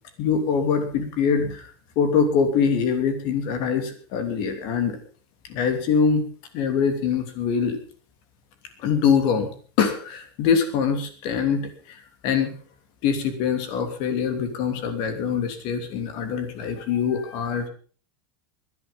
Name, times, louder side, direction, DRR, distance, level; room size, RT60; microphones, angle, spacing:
voice 1, 0.2-1.7 1.9-5.0 5.5-6.2 6.5-7.8 8.8-9.5 9.8-12.0 12.2-12.5 13.0-17.7, left 6 dB, 40° left, 8 dB, 3.0 m, -23 dB
20.0 x 11.0 x 5.4 m, 0.42 s
supercardioid pair, 180°, 13 cm